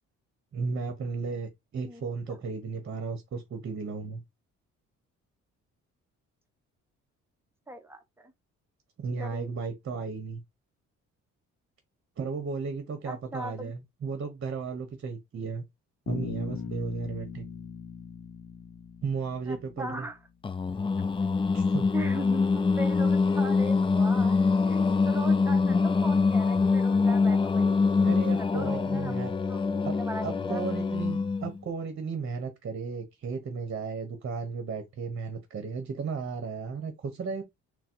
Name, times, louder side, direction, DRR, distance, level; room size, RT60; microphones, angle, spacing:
voice 1, 0.5-4.2 9.0-10.4 12.2-15.6 16.1-17.5 19.0-20.1 21.5-21.9 28.0-29.3 29.8-30.0 30.2-37.4, right 5 dB, 45° right, 0.9 m, -34 dB
voice 2, 1.8-2.4 7.7-8.3 9.1-9.5 13.0-13.7 19.5-20.2 21.3-21.4 21.9-24.8 25.0-27.8 28.4-29.6 29.9-30.6, right 2 dB, 10° right, 0.7 m, -39 dB
Bass guitar, 16.1-20.1, left 6 dB, 50° left, 0.6 m, -39 dB
Singing, 20.4-31.6, left 4 dB, 20° left, 0.3 m, -24 dB
3.7 x 2.0 x 4.4 m
cardioid pair, 90°, 30 cm